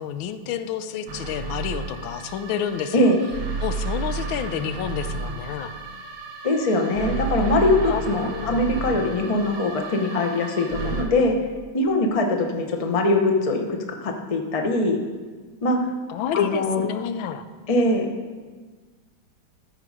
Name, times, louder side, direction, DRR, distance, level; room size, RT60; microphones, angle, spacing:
voice 1, 0.0-3.1 3.6-5.7 7.8-8.0 8.3-8.6 16.1-17.5, left 8 dB, 85° left, 11 dB, 1.4 m, -29 dB
sound 1, 1.1-11.0, right 4 dB, 85° right, 1.9 m, -32 dB
voice 2, 6.4-11.4 11.7-15.0 15.6-15.9 16.3-16.8 17.7-18.1, left 2 dB, 35° left, 3 dB, 0.5 m, -22 dB
13.0 x 6.5 x 4.9 m, 1.4 s
omnidirectional pair, 2.2 m